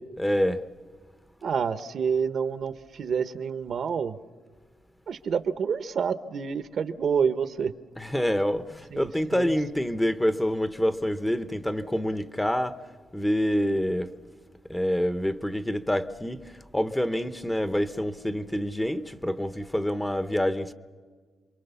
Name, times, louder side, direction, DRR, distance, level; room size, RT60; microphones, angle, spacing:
voice 1, 0.2-0.6 8.0-12.8 13.1-14.1 14.7-20.7, equal, 5° left, 0.8 m, -27 dB
voice 2, 1.4-4.2 5.1-7.7 8.9-9.6, right 6 dB, 55° right, 1.0 m, -28 dB
28.0 x 23.0 x 7.0 m
cardioid pair, 130°, 0 cm